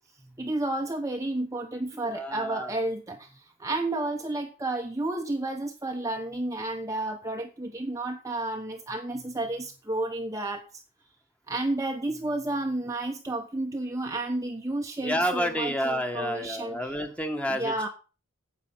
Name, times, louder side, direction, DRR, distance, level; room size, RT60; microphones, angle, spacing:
voice 1, 0.4-10.6 11.5-17.0 17.5-17.9, right 2 dB, 15° right, 3 dB, 1.0 m, -31 dB
voice 2, 2.1-2.7 15.0-17.9, equal, 5° left, 6 dB, 1.5 m, -29 dB
9.7 x 8.3 x 5.9 m, 0.34 s
head